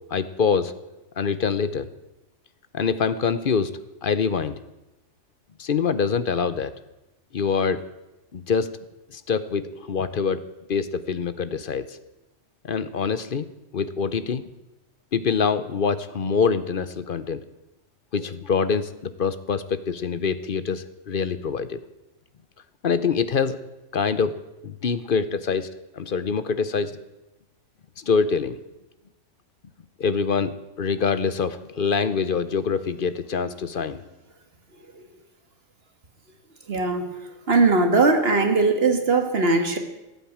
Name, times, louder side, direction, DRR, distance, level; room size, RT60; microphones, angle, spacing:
voice 1, 0.1-0.7 1.2-1.9 2.7-4.6 5.6-6.7 7.3-7.8 8.3-8.8 9.1-10.4 10.7-12.0 12.6-13.5 13.7-14.4 15.1-17.4 18.1-21.8 22.8-23.6 23.9-25.7 25.9-27.0 28.0-28.6 30.0-34.0, left 5 dB, 50° left, 13 dB, 0.9 m, -25 dB
voice 2, 36.7-37.1 37.5-39.8, right 3 dB, 55° right, 6 dB, 1.9 m, -20 dB
16.5 x 9.3 x 8.6 m, 0.99 s
omnidirectional pair, 1.3 m